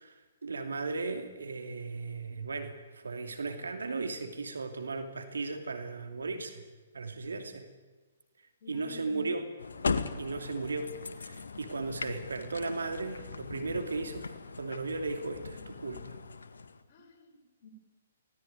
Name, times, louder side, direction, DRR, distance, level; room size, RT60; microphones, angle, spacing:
voice 1, 0.0-6.6 6.9-7.7 8.7-9.5 10.2-16.2, right 3 dB, 70° right, 6 dB, 2.8 m, -36 dB
voice 2, 8.6-9.3 16.9-17.7, right 1 dB, 40° left, 2 dB, 5.8 m, -51 dB
sound 1, 9.6-16.8, left 4 dB, 70° left, 1.8 m, -38 dB
25.0 x 18.0 x 9.5 m, 1.3 s
figure-of-eight pair, 125°, 0 cm